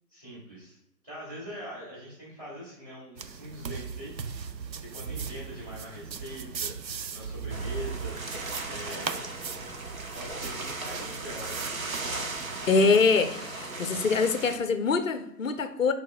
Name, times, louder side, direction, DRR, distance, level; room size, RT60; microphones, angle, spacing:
voice 1, 0.1-0.8 1.0-4.3 4.8-6.8 7.1-9.3 10.1-11.7, equal, 10° right, 1.7 m, -42 dB
sound 1, 3.2-13.0, right 6 dB, 90° right, 0.7 m, -38 dB
sound 2, 7.5-14.6, right 3 dB, 55° right, 0.9 m, -37 dB
voice 2, 12.7-15.9, left 4 dB, 55° left, 0.5 m, -24 dB
6.3 x 3.6 x 2.2 m
figure-of-eight pair, 160°, 49 cm